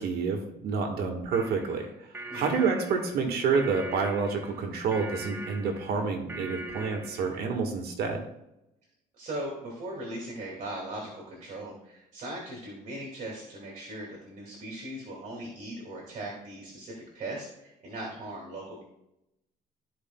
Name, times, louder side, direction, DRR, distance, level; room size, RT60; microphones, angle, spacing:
voice 1, 0.0-1.9 2.3-8.2, right 5 dB, 70° right, 4 dB, 1.4 m, -28 dB
sound 1, 1.3-7.4, right 1 dB, 15° right, 0.8 m, -41 dB
voice 2, 2.3-2.6 9.1-18.8, right 1 dB, 50° right, -2 dB, 2.2 m, -39 dB
13.5 x 4.9 x 2.2 m, 0.86 s
cardioid pair, 110°, 17 cm